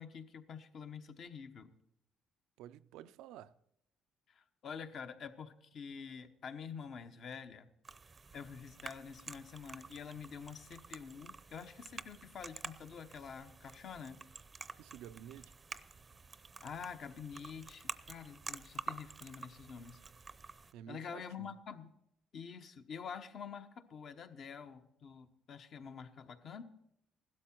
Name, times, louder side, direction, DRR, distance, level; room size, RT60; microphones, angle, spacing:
voice 1, 0.0-1.7 4.3-7.7 8.3-14.2 16.6-20.0 20.9-21.9 22.3-26.6, left 6 dB, 55° left, 1.1 m, -47 dB
voice 2, 2.6-3.6 14.8-15.5 20.7-21.5, right 11 dB, 85° right, 0.4 m, -51 dB
sound 1, 7.8-20.7, right 4 dB, 30° right, 0.6 m, -49 dB
16.0 x 12.5 x 4.5 m
cardioid pair, 95°, 0 cm